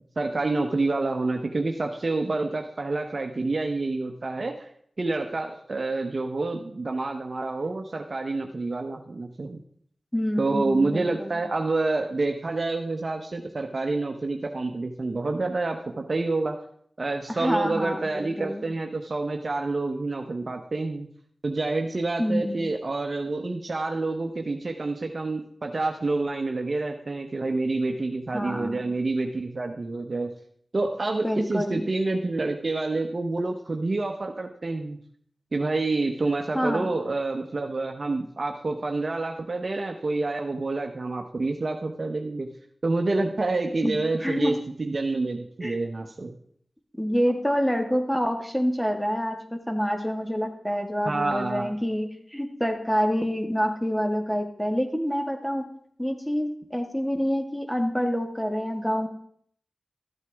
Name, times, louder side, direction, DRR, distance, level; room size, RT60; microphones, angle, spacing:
voice 1, 0.2-4.7 5.0-9.6 10.4-16.6 17.0-21.1 21.4-30.3 30.7-35.0 35.5-42.5 42.8-46.4 51.0-51.7, right 3 dB, 55° right, 3 dB, 0.9 m, -28 dB
voice 2, 10.1-11.4 17.3-18.6 22.2-22.6 28.3-28.8 31.2-31.8 36.5-37.0 43.8-44.6 45.6-45.8 47.0-55.7 56.0-59.1, equal, 5° left, 4 dB, 1.8 m, -27 dB
14.0 x 8.1 x 3.5 m, 0.63 s
cardioid pair, 45°, 0 cm